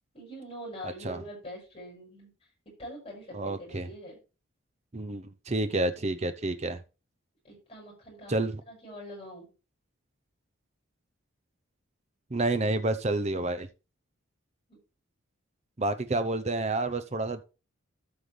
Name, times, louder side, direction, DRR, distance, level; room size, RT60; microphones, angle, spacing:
voice 1, 0.1-2.3 2.8-4.2 7.4-8.3 8.7-9.5 14.7-14.8, equal, 30° left, 6.3 m, -44 dB
voice 2, 0.8-1.2 3.3-3.9 4.9-6.8 8.3-8.6 12.3-13.7 15.8-17.4, right 2 dB, 30° right, 0.7 m, -29 dB
13.0 x 5.7 x 3.3 m
head